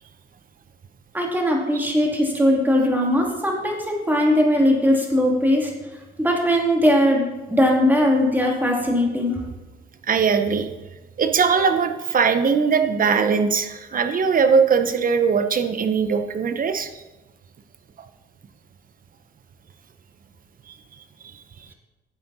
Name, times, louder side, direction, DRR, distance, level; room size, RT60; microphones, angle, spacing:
voice 1, 1.1-5.7 6.2-9.4, equal, 10° right, 0 dB, 2.5 m, -20 dB
voice 2, 10.1-10.7 11.2-16.9 18.0-18.1 20.7-20.8, right 6 dB, 45° right, 8 dB, 1.0 m, -20 dB
11.0 x 7.6 x 4.2 m, 1.1 s
cardioid pair, 90°, 20 cm